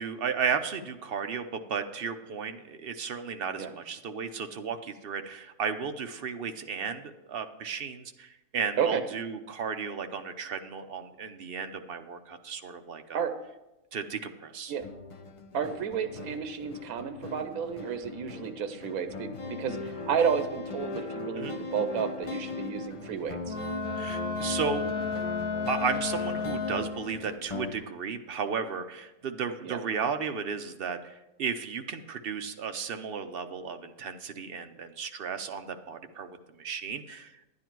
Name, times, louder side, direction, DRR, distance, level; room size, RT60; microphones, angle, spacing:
voice 1, 0.0-13.2 13.9-14.7 21.4-21.5 24.0-24.9 25.7-37.4, right 6 dB, 50° right, 7 dB, 0.7 m, -34 dB
sound 1, 14.8-27.8, left 4 dB, 30° left, 0.6 m, -39 dB
voice 2, 15.5-23.6 29.6-29.8, right 7 dB, 80° right, 9 dB, 1.2 m, -31 dB
Wind instrument woodwind instrument, 23.4-27.1, left 4 dB, 80° left, 2.1 m, -33 dB
10.5 x 9.9 x 4.6 m, 0.97 s
omnidirectional pair, 1.5 m